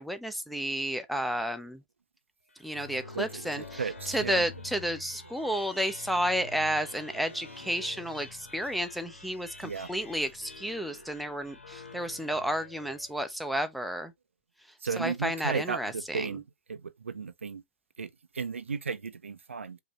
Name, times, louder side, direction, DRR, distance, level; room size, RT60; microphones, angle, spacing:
voice 1, 0.0-1.8 2.6-14.1 15.0-16.3, equal, ahead, 0.6 m, -32 dB
sound 1, 2.5-13.3, left 3 dB, 85° left, 1.6 m, -47 dB
voice 2, 3.1-4.4 9.6-9.9 14.8-16.4 16.7-17.6 18.0-19.8, right 5 dB, 80° right, 0.6 m, -35 dB
5.2 x 2.9 x 2.9 m
figure-of-eight pair, 115°, 7 cm